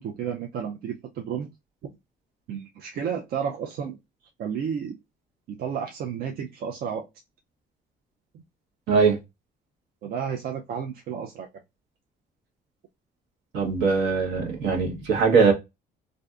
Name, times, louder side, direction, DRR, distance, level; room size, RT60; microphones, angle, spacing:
voice 1, 0.0-1.5 1.8-1.9 2.5-4.0 4.4-5.0 5.5-7.1 8.3-8.4 10.0-11.5, right 7 dB, 60° right, 0.5 m, -32 dB
voice 2, 8.9-9.2 13.5-15.5, right 5 dB, 80° right, 1.1 m, -21 dB
3.3 x 2.5 x 2.4 m
cardioid pair, 110°, 17 cm